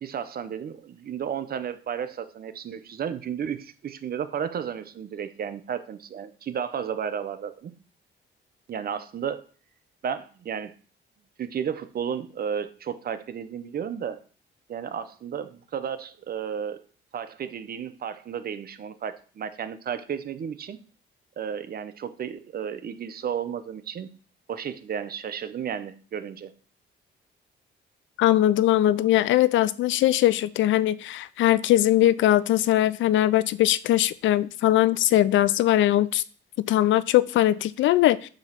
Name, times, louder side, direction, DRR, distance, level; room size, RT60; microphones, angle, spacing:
voice 1, 0.0-7.7 8.7-9.4 10.0-10.7 11.4-14.2 14.7-16.8 17.1-20.8 21.4-24.1 24.5-26.5, right 8 dB, 50° right, 0.7 m, -33 dB
voice 2, 28.2-36.2 36.7-38.3, left 13 dB, 75° left, 0.4 m, -21 dB
7.7 x 3.0 x 5.7 m
cardioid pair, 90°, 20 cm